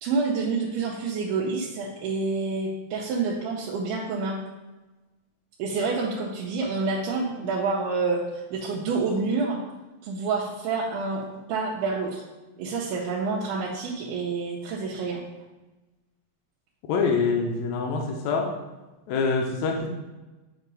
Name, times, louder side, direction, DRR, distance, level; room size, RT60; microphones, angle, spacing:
voice 1, 0.0-4.4 5.6-9.6 10.0-12.2 12.6-15.2, right 4 dB, 75° right, -4 dB, 2.2 m, -28 dB
voice 2, 16.9-18.5 19.1-19.9, left 4 dB, 75° left, 1 dB, 1.7 m, -25 dB
8.2 x 2.9 x 5.3 m, 1.1 s
omnidirectional pair, 4.0 m